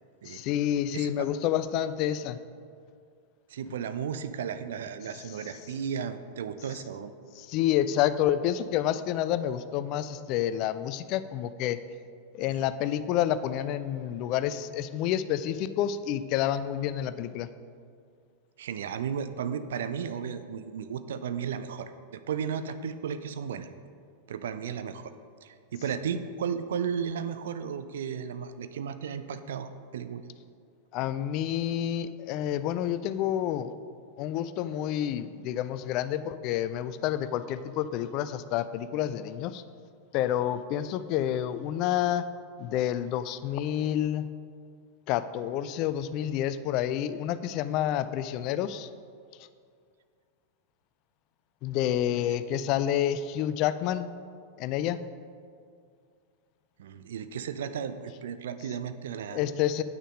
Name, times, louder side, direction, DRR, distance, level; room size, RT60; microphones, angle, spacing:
voice 1, 0.3-2.4 7.4-11.8 12.3-17.5 30.9-33.7 34.2-39.6 40.1-42.3 42.6-44.2 45.1-48.9 51.6-54.1 54.6-55.0 59.3-59.8, left 11 dB, 40° left, 13 dB, 0.4 m, -29 dB
voice 2, 0.9-1.3 3.5-7.1 12.5-12.6 18.6-23.7 24.3-25.1 25.4-30.2 56.8-59.4, right 7 dB, 60° right, 11 dB, 0.5 m, -34 dB
8.8 x 6.3 x 5.1 m, 2.2 s
figure-of-eight pair, 90°, 0 cm